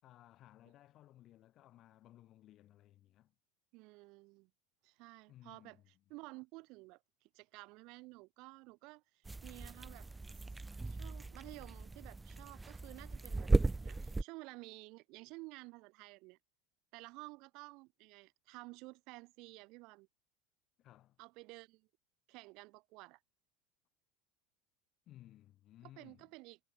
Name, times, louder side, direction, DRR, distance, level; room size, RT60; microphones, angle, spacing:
voice 1, 0.0-3.3 5.3-5.8 20.8-21.2 25.1-26.3, left 13 dB, 50° left, 4.5 m, -60 dB
voice 2, 3.7-4.5 4.8-5.8 6.1-10.1 10.8-13.5 13.8-16.4 16.9-20.1 21.2-21.9 22.3-23.2 25.8-26.6, right 24 dB, 60° right, 1.3 m, -53 dB
sound 1, 9.3-14.2, right 3 dB, 15° right, 0.5 m, -36 dB
hypercardioid pair, 80°, 0 cm